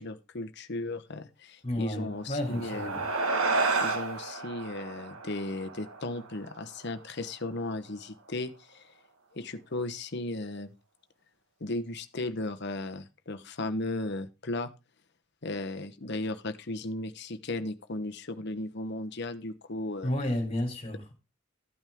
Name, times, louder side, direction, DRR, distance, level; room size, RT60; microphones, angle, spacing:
voice 1, 0.0-2.9 3.8-8.9 9.3-10.7 11.6-14.7 15.4-20.1, left 2 dB, 55° left, 1.1 m, -36 dB
voice 2, 1.6-3.0 20.0-21.1, left 1 dB, 30° left, 3.6 m, -32 dB
sound 1, 2.2-7.0, right 3 dB, 90° right, 1.6 m, -31 dB
14.0 x 8.9 x 3.6 m
head